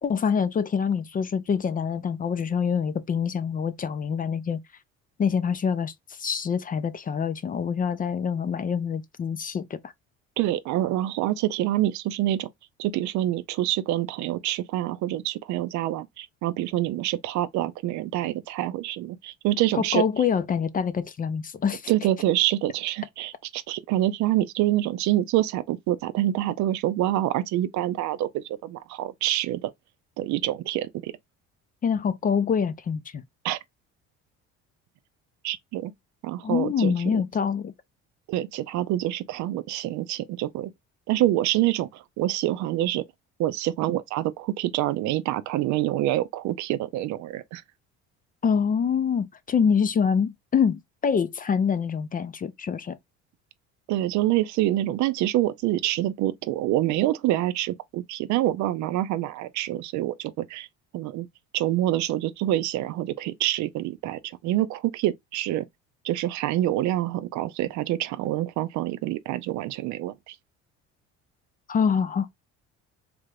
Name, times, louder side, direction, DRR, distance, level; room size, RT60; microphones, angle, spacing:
voice 1, 0.0-4.6 5.2-9.9 19.7-21.9 31.8-33.2 36.4-37.7 48.4-53.0 71.7-72.3, left 6 dB, 30° left, 0.4 m, -25 dB
voice 2, 10.4-12.5 12.8-20.0 21.9-29.7 30.2-31.1 33.4-33.6 35.4-35.9 36.2-36.9 38.3-40.7 41.1-43.0 43.4-47.6 53.9-60.7 60.9-61.3 61.5-65.7 66.0-70.4, right 14 dB, 65° right, 0.5 m, -26 dB
3.3 x 2.5 x 3.1 m
supercardioid pair, 90°, 31 cm